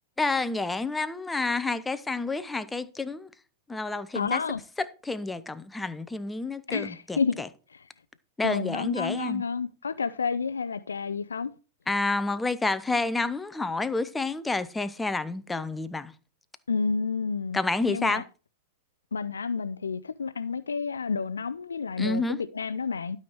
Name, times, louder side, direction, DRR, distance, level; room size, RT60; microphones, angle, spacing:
voice 1, 0.2-3.3 3.7-4.4 5.0-7.5 8.4-9.4 11.9-16.1 17.5-18.2 22.0-22.4, left 3 dB, 10° left, 0.8 m, -29 dB
voice 2, 4.1-4.6 6.7-7.4 7.7-7.8 8.4-11.5 16.7-17.6 17.9-18.2 19.1-23.2, left 5 dB, 80° left, 0.5 m, -30 dB
12.0 x 5.8 x 4.7 m
figure-of-eight pair, 100°, 0 cm